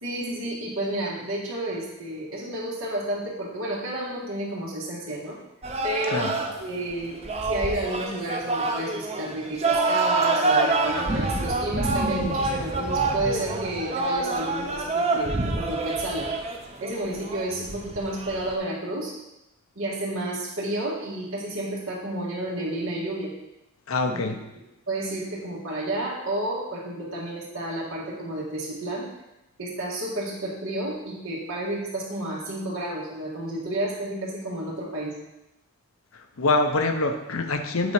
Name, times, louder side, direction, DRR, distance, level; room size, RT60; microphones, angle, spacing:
voice 1, 0.0-5.3 5.8-6.3 6.6-7.2 7.5-16.3 16.8-19.2 19.8-23.3 24.1-24.4 24.9-29.1 29.6-35.1, right 1 dB, 90° right, -6 dB, 2.0 m, -31 dB
sound 1, 5.6-18.6, right 3 dB, 30° right, 0.7 m, -27 dB
voice 2, 23.9-24.4 36.4-37.9, left 3 dB, 90° left, 6 dB, 0.8 m, -24 dB
8.0 x 4.2 x 5.2 m, 0.93 s
head